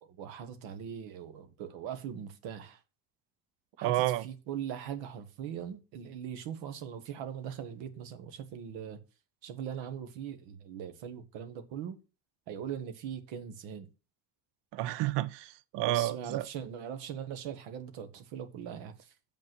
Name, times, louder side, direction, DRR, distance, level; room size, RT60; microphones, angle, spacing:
voice 1, 0.0-2.8 3.8-9.0 9.4-12.0 12.5-13.9 15.8-19.1, right 9 dB, 85° right, 1.5 m, -40 dB
voice 2, 3.8-4.2 14.7-16.4, right 15 dB, 70° right, 0.7 m, -30 dB
7.2 x 5.4 x 6.1 m
supercardioid pair, 85°, 44 cm